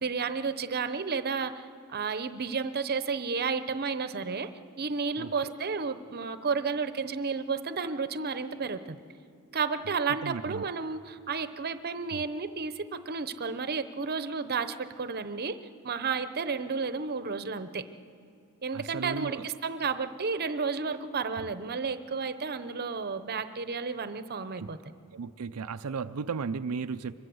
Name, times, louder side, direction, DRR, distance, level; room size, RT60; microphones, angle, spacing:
voice 1, 0.0-4.5 4.8-9.0 9.5-15.6 15.8-17.9 18.6-24.8, right 5 dB, 45° right, 11 dB, 0.8 m, -32 dB
voice 2, 5.2-5.5 10.2-10.6 12.1-12.2 18.7-19.5 21.4-21.5 24.5-24.7 25.1-27.1, right 5 dB, 80° right, 9 dB, 0.5 m, -35 dB
24.5 x 20.5 x 7.8 m, 2.4 s
head